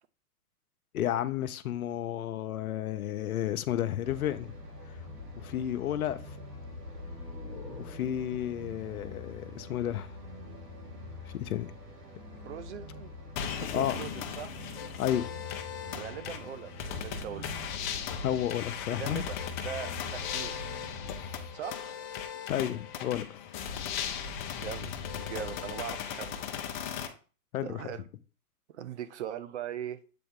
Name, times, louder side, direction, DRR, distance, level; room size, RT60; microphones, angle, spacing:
voice 1, 0.9-4.5 5.4-6.2 7.8-10.1 11.3-11.7 13.7-14.0 15.0-15.3 18.2-19.2 22.5-23.4 27.5-27.8, left 11 dB, 65° left, 0.7 m, -32 dB
sound 1, 4.0-21.5, left 2 dB, 90° right, 2.2 m, -44 dB
sound 2, 6.8-10.4, left 1 dB, 5° left, 1.8 m, -51 dB
voice 2, 12.5-13.1 13.6-14.5 15.9-17.5 18.9-20.6 21.5-21.8 24.6-24.9 25.3-26.4 26.8-26.9 27.6-28.0 28.7-30.0, right 10 dB, 50° right, 0.6 m, -40 dB
sound 3, 13.4-27.1, left 8 dB, 30° left, 0.7 m, -37 dB
7.7 x 3.8 x 3.6 m
hypercardioid pair, 135°, 46 cm